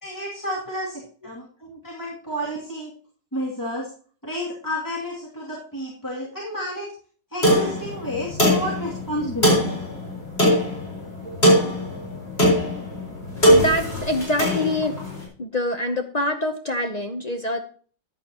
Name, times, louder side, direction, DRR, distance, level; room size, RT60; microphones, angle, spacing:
voice 1, 0.0-2.9 3.3-3.9 4.2-6.9 7.3-9.6, equal, 10° left, -5 dB, 2.4 m, -31 dB
sound 1, 7.4-15.2, equal, 35° left, 4.8 m, -21 dB
voice 2, 13.5-14.9 15.4-17.6, left 1 dB, 70° left, 5 dB, 0.3 m, -25 dB
14.0 x 9.6 x 2.9 m, 0.42 s
omnidirectional pair, 2.0 m